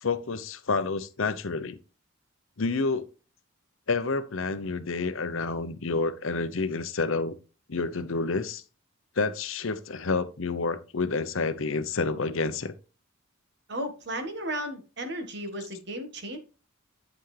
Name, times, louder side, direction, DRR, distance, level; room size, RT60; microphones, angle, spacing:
voice 1, 0.0-1.8 2.6-3.0 3.9-7.3 7.7-8.6 9.2-12.7, left 4 dB, 70° left, 0.8 m, -29 dB
voice 2, 13.7-16.4, right 1 dB, 50° right, 1.6 m, -34 dB
9.3 x 5.7 x 3.3 m
head